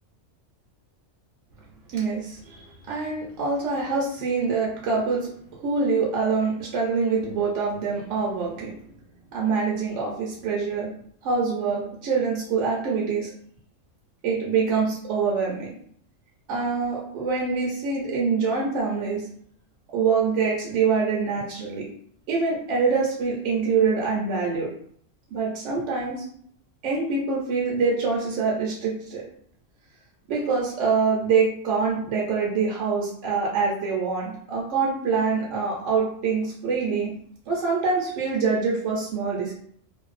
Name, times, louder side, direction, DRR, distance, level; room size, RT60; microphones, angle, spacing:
voice 1, 1.9-5.3 5.6-8.7 9.3-10.9 11.2-13.3 14.2-15.7 16.5-19.2 19.9-21.9 22.3-24.7 25.3-26.2 26.8-29.2 30.3-37.1 37.5-39.5, right 5 dB, 70° right, -3 dB, 0.8 m, -25 dB
2.5 x 2.1 x 2.4 m, 0.63 s
omnidirectional pair, 1.4 m